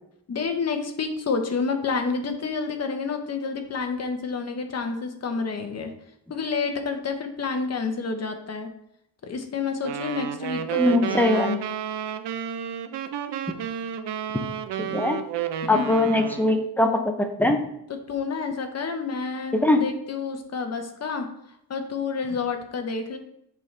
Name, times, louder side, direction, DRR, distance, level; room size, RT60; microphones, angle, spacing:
voice 1, 0.3-5.9 6.3-8.7 9.2-11.6 15.6-16.1 17.9-21.3 21.7-23.2, left 5 dB, 40° left, 5 dB, 0.8 m, -29 dB
sound 1, 9.8-16.7, right 10 dB, 85° right, 0.6 m, -31 dB
voice 2, 10.7-11.5 14.8-15.2 15.7-17.6 19.5-19.8, left 2 dB, 5° left, 4 dB, 0.5 m, -21 dB
7.4 x 5.3 x 3.2 m, 0.77 s
wide cardioid pair, 175°, 41 cm